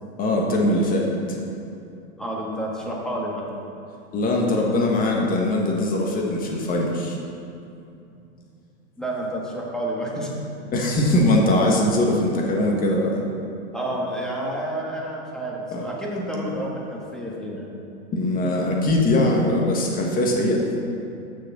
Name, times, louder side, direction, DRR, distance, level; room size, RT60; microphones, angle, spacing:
voice 1, 0.2-1.4 4.1-7.2 10.7-13.2 15.7-15.8 18.1-20.6, left 1 dB, 25° left, 0 dB, 1.5 m, -21 dB
voice 2, 2.2-3.4 9.0-10.3 13.7-17.7, right 1 dB, ahead, -4 dB, 1.5 m, -29 dB
6.6 x 6.5 x 6.0 m, 2.6 s
hypercardioid pair, 120°, 36 cm